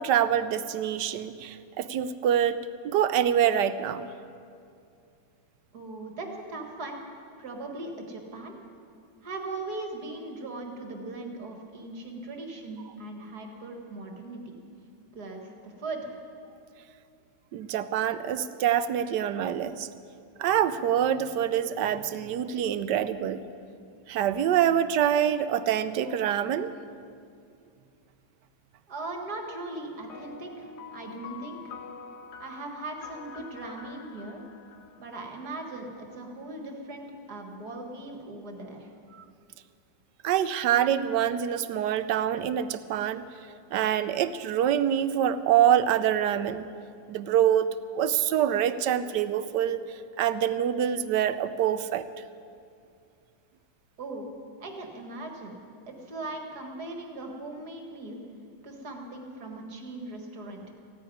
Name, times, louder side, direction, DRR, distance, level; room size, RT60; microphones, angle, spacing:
voice 1, 0.0-2.6 2.8-4.1 17.5-19.9 20.4-23.4 24.1-26.7 40.2-43.2 43.7-46.7 47.1-47.7 47.9-52.1, right 10 dB, 75° right, 13 dB, 1.2 m, -25 dB
voice 2, 5.7-7.0 7.4-8.5 9.2-14.6 15.1-16.1 28.9-31.7 32.4-34.4 35.0-38.9 54.0-54.3 54.6-55.6 55.9-58.2 58.6-60.6, right 2 dB, 60° right, 3 dB, 2.2 m, -39 dB
sound 1, 30.1-35.9, left 6 dB, 65° left, 1.3 m, -46 dB
16.0 x 9.6 x 9.3 m, 2.4 s
omnidirectional pair, 2.0 m